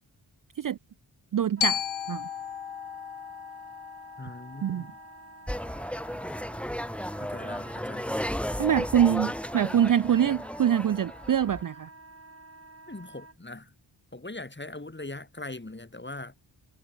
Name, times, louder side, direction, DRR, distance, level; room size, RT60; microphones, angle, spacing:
voice 1, 1.3-1.8 2.1-2.3 4.6-4.8 8.6-11.9, right 9 dB, 45° right, 0.5 m, -24 dB
Glockenspiel, 1.6-5.7, left 10 dB, 75° left, 1.2 m, -35 dB
Wind instrument woodwind instrument, 1.6-13.4, right 2 dB, 30° right, 6.4 m, -50 dB
voice 2, 4.2-5.0 7.2-8.2 12.9-13.7 14.1-16.4, left 2 dB, 20° left, 4.6 m, -41 dB
sound 1, 5.5-11.6, equal, ahead, 2.9 m, -34 dB
cardioid pair, 55°, 48 cm